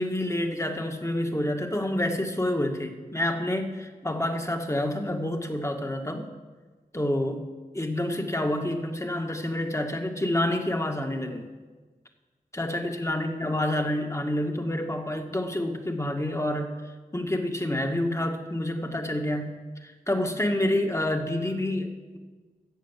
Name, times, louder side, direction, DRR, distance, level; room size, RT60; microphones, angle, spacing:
voice 1, 0.0-6.3 6.9-7.4 7.7-11.5 12.5-16.7 17.1-22.2, left 1 dB, 20° left, 4 dB, 1.9 m, -28 dB
14.0 x 8.2 x 7.5 m, 1.3 s
cardioid pair, 40°, 15 cm